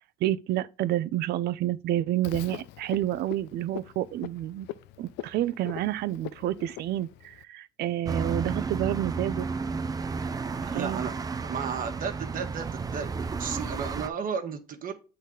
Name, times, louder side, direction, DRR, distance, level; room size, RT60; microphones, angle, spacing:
voice 1, 0.2-4.7 5.0-9.5 10.6-11.0, right 13 dB, 70° right, 0.6 m, -29 dB
Frog, 2.2-7.4, left 14 dB, 85° left, 0.5 m, -42 dB
sound 1, 8.1-14.1, right 4 dB, 20° right, 0.5 m, -32 dB
voice 2, 10.7-11.1 11.4-13.1 13.4-14.9, right 6 dB, 55° right, 1.5 m, -33 dB
8.3 x 4.1 x 3.9 m
cardioid pair, 110°, 17 cm